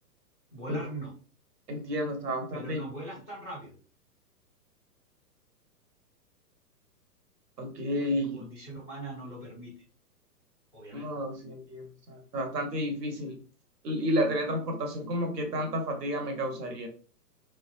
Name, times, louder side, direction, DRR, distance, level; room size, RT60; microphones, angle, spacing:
voice 1, 0.5-1.1 2.5-3.7 8.3-9.7 10.7-11.1, right 2 dB, 5° right, -11 dB, 0.3 m, -40 dB
voice 2, 1.7-2.8 7.6-8.4 10.9-13.4 13.8-16.9, equal, 70° right, 3 dB, 0.9 m, -31 dB
2.5 x 2.1 x 2.3 m, 0.38 s
figure-of-eight pair, 120°, 49 cm